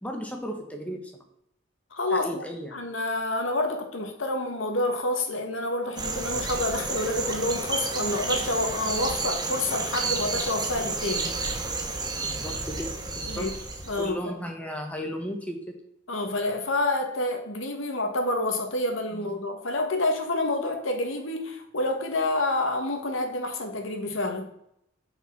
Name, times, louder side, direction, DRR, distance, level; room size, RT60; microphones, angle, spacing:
voice 1, 0.0-1.1 2.1-2.8 12.2-13.5 14.0-15.8 19.1-19.4, equal, 5° left, 3 dB, 1.2 m, -35 dB
voice 2, 1.9-2.4 2.7-11.4 13.3-13.5 13.9-14.2 16.1-24.5, left 2 dB, 80° left, 4 dB, 1.5 m, -28 dB
sound 1, 6.0-14.1, right 3 dB, 20° right, 1.0 m, -31 dB
6.3 x 5.4 x 5.8 m, 0.74 s
head